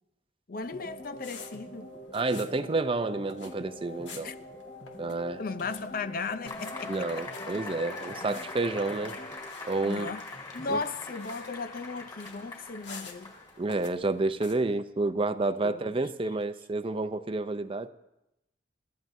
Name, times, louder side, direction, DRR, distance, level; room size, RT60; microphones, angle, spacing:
voice 1, 0.5-1.9 4.2-4.3 5.4-7.1 8.2-8.3 9.8-10.2 10.5-13.3 15.6-15.9, left 4 dB, 50° left, 0.6 m, -36 dB
sound 1, 0.6-14.5, left 4 dB, 85° left, 1.9 m, -52 dB
sound 2, 0.6-9.4, left 1 dB, 70° left, 4.9 m, -45 dB
voice 2, 2.1-4.3 5.0-5.4 6.9-9.2 9.7-10.1 10.7-10.8 13.6-17.9, right 2 dB, 30° right, 0.6 m, -30 dB
Cheering / Applause / Crowd, 6.5-13.7, left 3 dB, 25° left, 4.0 m, -42 dB
29.5 x 14.5 x 2.7 m
head